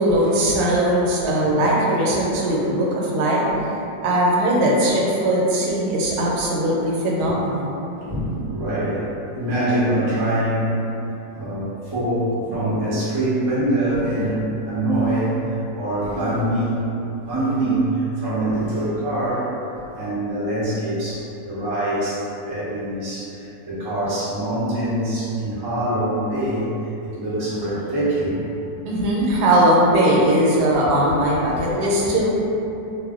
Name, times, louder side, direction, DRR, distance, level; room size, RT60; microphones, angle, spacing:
voice 1, 0.0-3.4 4.0-7.7 12.5-12.6 28.9-32.3, right 1 dB, 85° right, -4 dB, 1.2 m, -19 dB
voice 2, 1.2-1.6 2.1-2.4 3.5-3.7 6.3-6.5 8.0-9.1 9.4-10.8 11.3-15.4 15.7-16.8 17.2-19.5 19.7-26.7 27.0-28.5 31.1-31.2 31.5-31.8, right 1 dB, 35° right, -10 dB, 0.3 m, -24 dB
2.6 x 2.1 x 3.5 m, 2.9 s
omnidirectional pair, 1.7 m